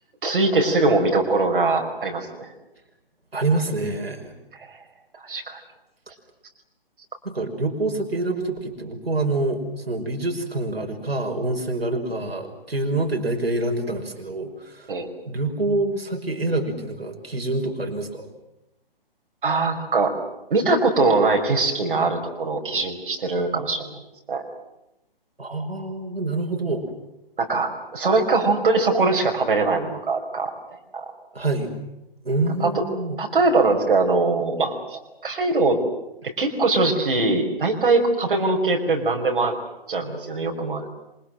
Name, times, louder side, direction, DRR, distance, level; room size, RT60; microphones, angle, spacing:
voice 1, 0.2-2.5 5.3-5.6 14.9-15.1 19.4-20.1 20.5-24.0 24.3-24.4 27.4-30.5 30.9-31.0 32.6-32.7 33.2-35.8 36.2-39.5 39.9-40.9, right 3 dB, 60° right, 1 dB, 5.6 m, -22 dB
voice 2, 3.3-4.3 7.2-14.9 15.3-18.3 25.4-26.9 31.3-31.7 32.2-33.2, right 2 dB, 80° right, 3 dB, 5.6 m, -26 dB
26.5 x 26.0 x 7.7 m, 0.88 s
figure-of-eight pair, 140°, 30 cm